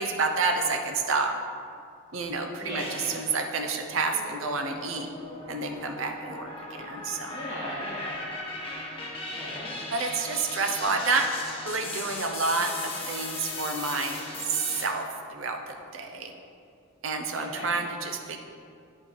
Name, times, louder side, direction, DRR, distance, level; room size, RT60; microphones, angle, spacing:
voice 1, 0.0-1.3 2.1-5.1 5.5-7.4 9.9-16.3 17.0-18.4, right 4 dB, 75° right, 4 dB, 0.8 m, -29 dB
voice 2, 2.6-3.2 7.3-8.2 9.3-9.8 17.3-17.8, equal, 15° right, -11 dB, 1.8 m, -37 dB
sound 1, 2.8-3.6 4.1-14.8, left 2 dB, 25° left, 1.0 m, -38 dB
9.3 x 4.4 x 4.6 m, 2.4 s
head